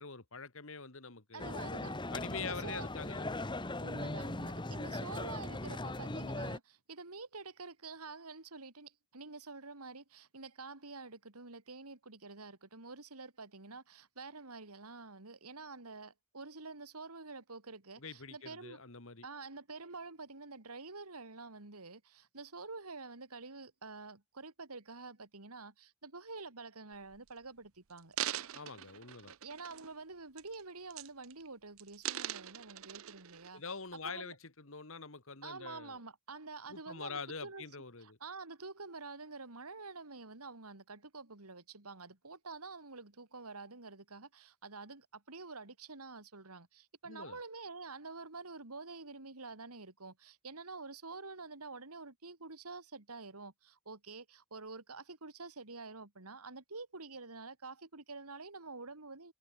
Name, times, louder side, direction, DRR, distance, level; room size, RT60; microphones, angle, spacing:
voice 1, 0.0-1.5 2.1-3.4 18.0-19.3 28.5-29.3 33.5-36.0 36.7-38.2 47.1-47.4, left 5 dB, 65° left, 2.1 m, -45 dB
voice 2, 1.3-2.0 2.4-2.9 3.8-18.8 19.2-28.2 29.4-33.6 34.0-34.3 35.4-37.7 38.0-59.3, right 3 dB, 85° right, 3.0 m, -48 dB
sound 1, 1.4-6.6, left 2 dB, 20° left, 1.3 m, -39 dB
sound 2, 26.9-27.3 27.9-30.0 30.4-30.6 30.9-31.5 31.8-33.5 34.1-34.2, right 12 dB, 65° right, 0.7 m, -42 dB
head